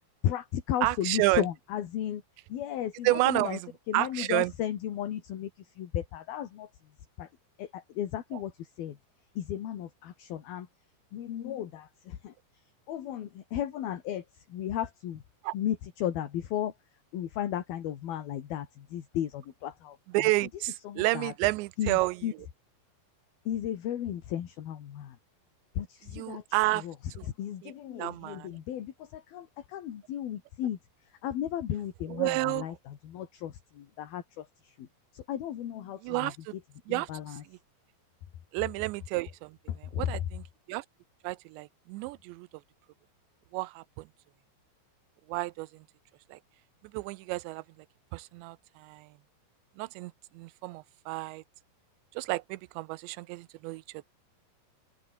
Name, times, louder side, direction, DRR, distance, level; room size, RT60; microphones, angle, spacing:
voice 1, 0.2-2.2 2.5-3.6 3.9-5.5 5.8-6.7 7.2-7.3 7.6-9.0 9.4-10.7 11.1-12.3 12.9-14.2 14.5-15.2 15.5-16.7 17.1-20.0 20.9-21.3 21.8-22.3 23.5-25.2 25.8-26.9 27.4-30.8 31.2-34.9 35.1-36.3 36.9-37.4 39.7-40.0, left 11 dB, 60° left, 3.6 m, -35 dB
voice 2, 0.8-1.5 3.0-4.5 8.3-8.4 15.4-15.5 20.1-22.3 26.0-26.9 27.2-27.3 27.6-27.7 28.0-28.6 32.1-32.8 36.0-36.5 36.9-37.6 38.5-40.8 41.2-42.5 43.5-44.1 45.3-45.8 46.3-46.4 46.9-47.6 48.1-49.1 49.8-51.4 52.1-54.1, right 21 dB, 85° right, 2.9 m, -31 dB
open air
omnidirectional pair, 5.1 m